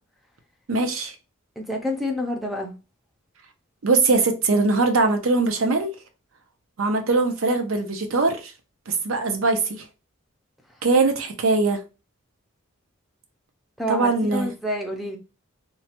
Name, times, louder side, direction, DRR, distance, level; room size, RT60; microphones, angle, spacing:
voice 1, 0.7-1.2 3.8-5.9 6.8-8.5 8.9-9.8 10.8-11.8 13.9-14.5, right 3 dB, 75° right, 0.6 m, -21 dB
voice 2, 1.6-2.7 13.8-15.2, left 1 dB, ahead, 0.5 m, -28 dB
3.0 x 2.1 x 2.8 m
head